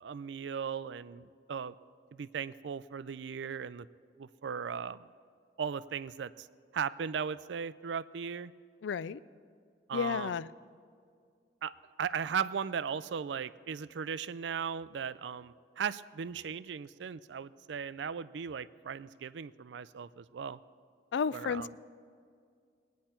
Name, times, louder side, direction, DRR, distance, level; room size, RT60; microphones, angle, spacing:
voice 1, 0.0-1.7 2.1-3.9 4.2-5.1 5.6-6.5 6.7-8.5 9.9-10.3 11.6-11.7 12.0-20.6 21.3-21.7, right 6 dB, 80° right, 16 dB, 0.4 m, -37 dB
voice 2, 8.8-9.2 9.9-10.5 21.1-21.7, left 6 dB, 85° left, 17 dB, 0.4 m, -32 dB
21.5 x 9.3 x 4.4 m, 2.2 s
head